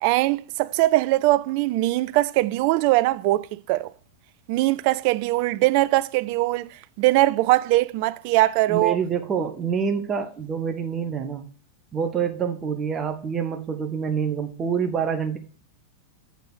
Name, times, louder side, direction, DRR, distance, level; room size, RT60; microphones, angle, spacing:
voice 1, 0.0-3.9 4.5-6.7 7.0-9.0, right 18 dB, 45° right, 0.3 m, -21 dB
voice 2, 8.7-11.4 11.9-15.4, right 6 dB, 25° right, 0.8 m, -26 dB
6.7 x 4.0 x 6.0 m
figure-of-eight pair, 90°, 0 cm